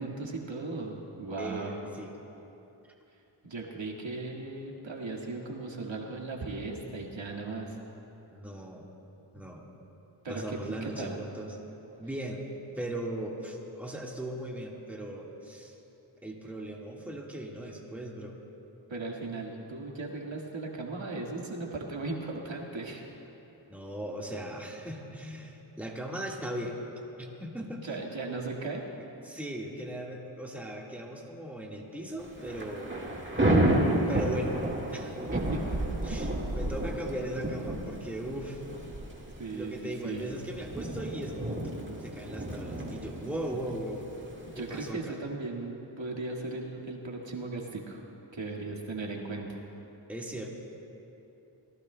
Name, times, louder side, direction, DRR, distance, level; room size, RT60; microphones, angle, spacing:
voice 1, 0.0-1.8 3.4-7.8 9.3-9.4 10.2-11.2 18.9-23.0 27.8-28.8 35.5-35.6 39.4-40.3 44.6-48.0 48.3-49.6, right 3 dB, 75° right, -1 dB, 1.8 m, -37 dB
voice 2, 1.4-2.1 8.3-8.8 9.3-9.6 10.3-11.5 12.0-12.4 12.8-15.7 16.2-18.4 23.7-26.8 27.2-27.8 29.2-33.2 34.1-34.5 34.9-35.2 36.0-38.6 39.5-41.6 42.0-44.1 44.6-45.2 50.1-50.5, right 1 dB, 5° right, -2 dB, 1.7 m, -38 dB
Thunder / Rain, 32.3-44.9, right 1 dB, 25° right, 1.7 m, -31 dB
26.5 x 18.0 x 2.2 m, 3.0 s
wide cardioid pair, 100°, 46 cm